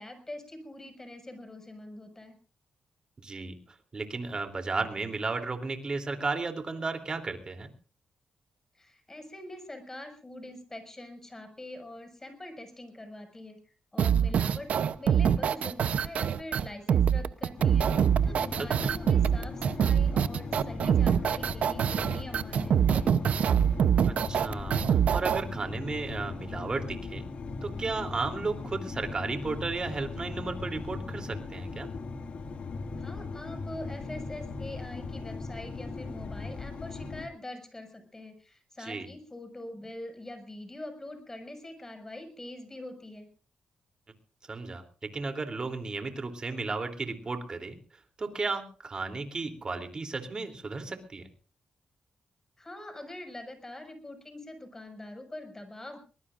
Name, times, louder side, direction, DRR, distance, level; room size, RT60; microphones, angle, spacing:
voice 1, 0.0-2.4 8.7-14.7 15.0-23.2 33.0-43.3 52.6-56.0, left 1 dB, 20° left, 7 dB, 6.0 m, -44 dB
voice 2, 3.2-3.6 3.9-7.7 18.8-18.9 24.0-27.2 27.6-31.9 38.8-39.1 44.5-44.8 45.1-47.8 48.2-51.3, right 3 dB, 35° right, 7 dB, 3.2 m, -34 dB
sound 1, 14.0-25.4, right 8 dB, 70° right, 0.8 m, -24 dB
sound 2, 17.6-37.3, left 3 dB, 55° left, 2.1 m, -39 dB
22.5 x 20.5 x 2.6 m, 0.38 s
cardioid pair, 95°, 2 cm